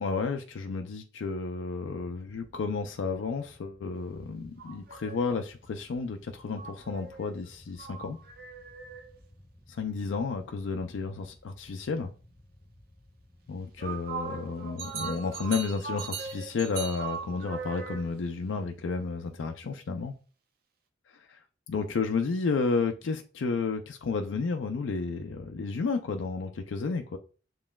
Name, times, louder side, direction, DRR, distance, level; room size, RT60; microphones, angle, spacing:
voice 1, 0.0-8.2 9.7-12.1 13.5-20.1 21.7-27.2, left 4 dB, 80° left, 0.4 m, -32 dB
sound 1, 1.9-15.4 15.7-15.9 16.6-16.8 17.4-17.6 18.7-18.9, left 1 dB, 15° left, 1.5 m, -58 dB
sound 2, 4.6-5.4 6.5-9.2 13.8-18.3, right 6 dB, 50° right, 0.6 m, -39 dB
7.1 x 3.1 x 2.3 m
head